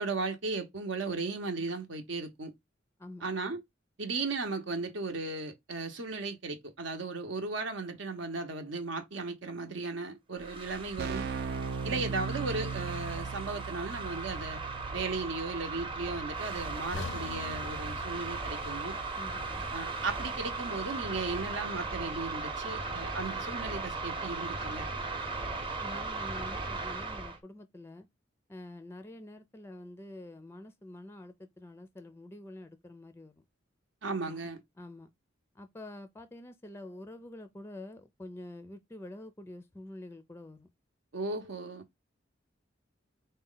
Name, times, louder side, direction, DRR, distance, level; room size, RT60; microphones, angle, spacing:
voice 1, 0.0-2.5 3.2-3.6 4.0-11.3 11.8-14.6 14.9-19.0 19.7-24.9 34.0-34.6 41.1-41.8, right 3 dB, 75° right, 0.8 m, -36 dB
sound 1, 10.4-27.4, right 3 dB, 25° right, 0.7 m, -37 dB
Keyboard (musical), 10.4-10.5 10.7-21.3, right 5 dB, 55° right, 0.4 m, -41 dB
sound 2, 16.9-21.0 21.3-21.5 22.1-22.2, left 4 dB, 80° left, 0.5 m, -45 dB
voice 2, 19.2-19.7 25.8-28.1 28.5-33.4 34.2-34.5 34.8-35.1 35.5-40.7, left 1 dB, 15° left, 0.4 m, -47 dB
4.0 x 2.1 x 3.8 m
head